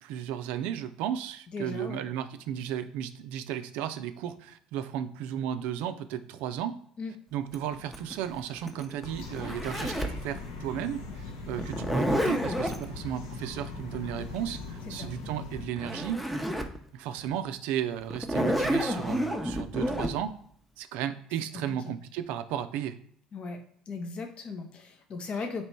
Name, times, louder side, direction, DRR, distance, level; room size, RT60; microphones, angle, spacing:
voice 1, 0.0-6.8 7.3-16.2 16.9-20.3 20.8-23.0, right 10 dB, 70° right, 10 dB, 0.3 m, -34 dB
voice 2, 1.5-2.0 7.0-7.1 15.0-15.1 21.7-21.8 23.3-25.7, left 4 dB, 45° left, 5 dB, 0.6 m, -37 dB
Zipper (clothing), 7.5-10.2 11.6-12.8 15.4-15.5 15.8-16.8 17.2-17.3 18.1-20.1, equal, ahead, 0.6 m, -29 dB
sound 1, 9.0-15.7, left 3 dB, 75° left, 0.8 m, -40 dB
3.1 x 3.0 x 4.3 m, 0.62 s
hypercardioid pair, 65°, 3 cm